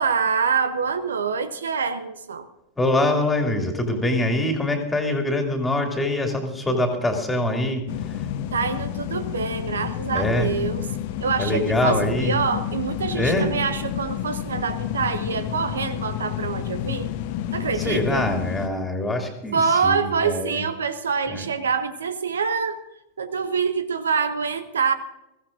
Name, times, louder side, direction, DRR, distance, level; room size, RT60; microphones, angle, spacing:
voice 1, 0.0-2.5 8.5-10.9 11.2-17.1 17.5-18.3 19.5-22.8 23.2-24.9, right 5 dB, 70° right, 13 dB, 0.7 m, -25 dB
voice 2, 2.8-7.8 10.1-10.5 11.4-12.4 13.1-13.5 17.7-20.6 21.3-21.5, left 1 dB, 10° left, 3 dB, 2.5 m, -24 dB
sound 1, 7.9-18.7, left 10 dB, 50° left, 0.9 m, -30 dB
22.0 x 15.0 x 2.6 m, 0.93 s
figure-of-eight pair, 90°, 0 cm